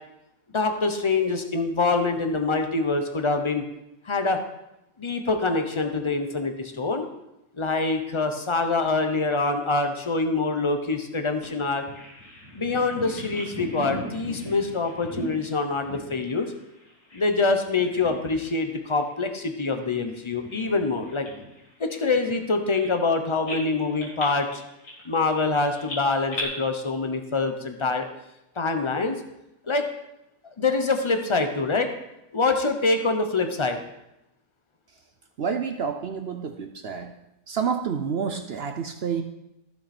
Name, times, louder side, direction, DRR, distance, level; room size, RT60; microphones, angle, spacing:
voice 1, 0.5-3.7 4.0-4.4 5.0-7.1 7.5-11.8 12.5-16.5 17.1-21.3 21.8-24.5 25.0-28.1 28.6-29.2 29.6-29.9 30.6-31.9 32.3-33.8, left 3 dB, 40° left, 6 dB, 0.4 m, -25 dB
Bird vocalization bird call bird song, 11.4-17.4 17.7-18.6 18.9-19.1 19.7-23.1 23.5-26.4, left 1 dB, 75° left, 3.3 m, -39 dB
voice 2, 35.4-37.1 37.5-39.2, right 6 dB, 60° right, 6 dB, 0.6 m, -29 dB
14.5 x 6.0 x 4.3 m, 0.88 s
omnidirectional pair, 1.6 m